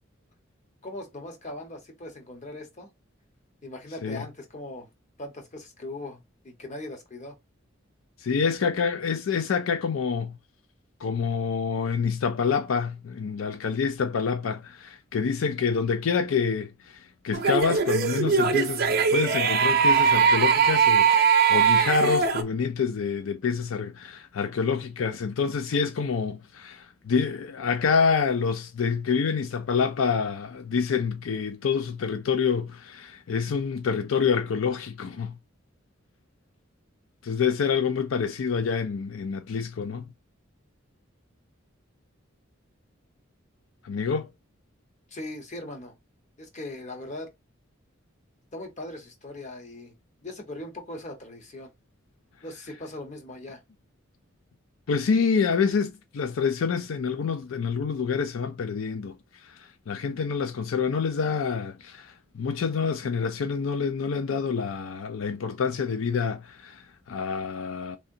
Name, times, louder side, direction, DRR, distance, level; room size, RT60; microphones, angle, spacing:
voice 1, 0.8-2.9 3.6-4.9 5.2-7.3 45.1-45.9 46.4-47.3 48.5-49.9 50.2-51.7 52.4-53.6, left 2 dB, 35° left, 1.2 m, -39 dB
voice 2, 8.2-10.4 11.0-35.4 37.2-40.0 43.8-44.3 54.9-59.2 59.4-68.0, left 5 dB, 85° left, 0.4 m, -27 dB
sound 1, 17.3-22.4, right 6 dB, 50° right, 0.6 m, -21 dB
3.8 x 3.3 x 2.7 m
head